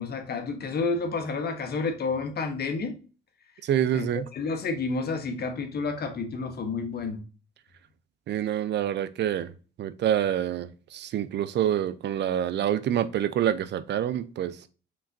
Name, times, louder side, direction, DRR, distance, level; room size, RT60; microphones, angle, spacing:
voice 1, 0.0-3.0 3.9-7.2, left 4 dB, 55° left, 1.0 m, -30 dB
voice 2, 3.6-4.3 8.3-14.7, right 10 dB, 60° right, 0.5 m, -27 dB
5.1 x 3.3 x 2.6 m
cardioid pair, 90°, 20 cm